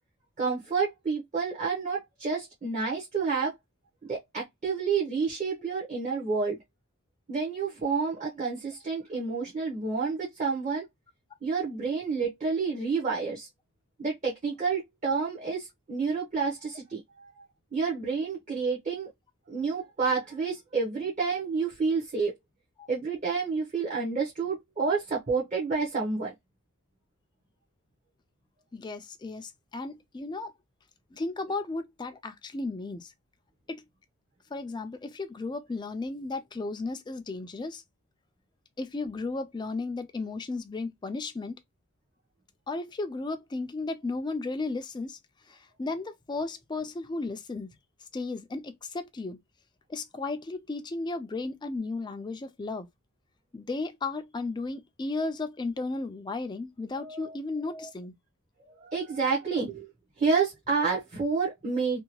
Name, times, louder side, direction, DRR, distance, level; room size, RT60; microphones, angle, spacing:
voice 1, 0.4-3.5 4.0-6.6 7.3-10.9 11.4-13.5 14.0-17.0 17.3-17.4 17.7-19.1 19.5-22.3 22.9-26.3 31.5-31.6 56.9-57.3 58.8-59.9 60.2-62.0, right 4 dB, 35° right, 0.8 m, -29 dB
voice 2, 28.7-30.5 31.1-33.1 33.7-33.8 34.5-37.8 38.8-41.6 42.7-45.2 45.5-47.7 48.1-49.4 49.9-52.9 53.5-58.1, left 3 dB, 20° left, 0.3 m, -34 dB
2.8 x 2.2 x 2.8 m
head